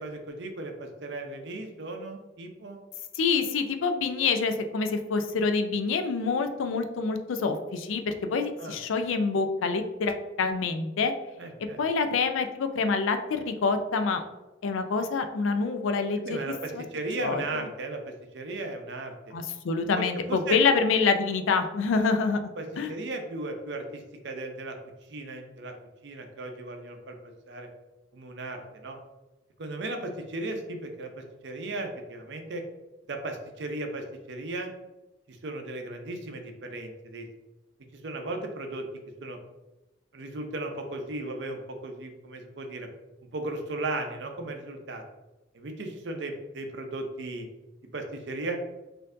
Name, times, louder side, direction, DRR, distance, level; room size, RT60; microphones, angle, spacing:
voice 1, 0.0-2.8 8.6-8.8 11.4-11.8 16.2-19.1 20.0-20.6 22.6-24.8 25.1-25.7 26.0-27.7 28.1-29.0 29.6-32.6 33.1-34.7 35.3-37.3 38.0-38.8 39.2-39.4 40.1-42.9 43.3-45.0 45.5-47.5 47.9-48.6, right 2 dB, 60° right, 4 dB, 0.5 m, -36 dB
voice 2, 3.1-11.1 11.8-14.2 14.6-16.8 17.2-17.7 19.3-22.9, left 4 dB, 85° left, 7 dB, 0.4 m, -27 dB
4.3 x 2.6 x 2.5 m, 1.0 s
head